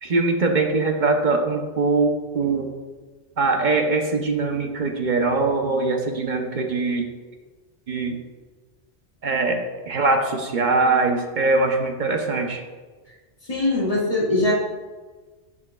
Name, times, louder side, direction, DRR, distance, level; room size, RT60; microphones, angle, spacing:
voice 1, 0.0-2.7 3.4-7.0 7.9-8.2 9.2-12.6, right 3 dB, 45° right, 3 dB, 0.9 m, -22 dB
voice 2, 13.4-14.5, left 2 dB, 30° left, -6 dB, 2.2 m, -21 dB
10.5 x 6.1 x 2.3 m, 1.3 s
omnidirectional pair, 1.2 m